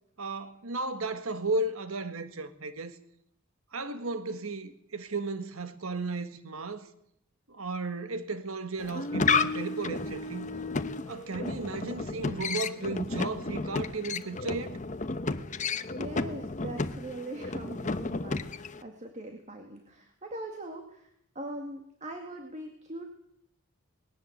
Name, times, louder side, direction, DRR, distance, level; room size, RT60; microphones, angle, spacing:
voice 1, 0.2-3.0 3.7-6.9 7.5-10.5 11.1-14.8, right 3 dB, 75° right, 1.6 m, -34 dB
sound 1, 8.8-18.8, left 4 dB, 35° left, 0.9 m, -32 dB
voice 2, 15.9-21.1 21.4-23.0, right 1 dB, 35° right, 2.1 m, -41 dB
19.5 x 18.0 x 8.0 m
head